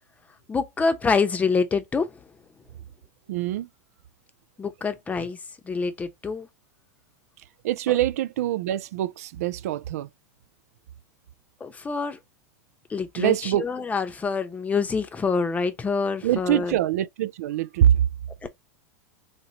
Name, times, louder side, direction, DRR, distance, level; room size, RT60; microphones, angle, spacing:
voice 1, 0.5-2.2 4.6-5.4 5.6-6.5 11.6-12.2 12.9-16.8 18.4-18.5, left 4 dB, 15° left, 0.8 m, -26 dB
voice 2, 3.3-3.7 7.6-10.1 13.2-13.7 16.2-18.0, right 12 dB, 65° right, 0.4 m, -24 dB
4.2 x 2.9 x 2.8 m
hypercardioid pair, 95°, 9 cm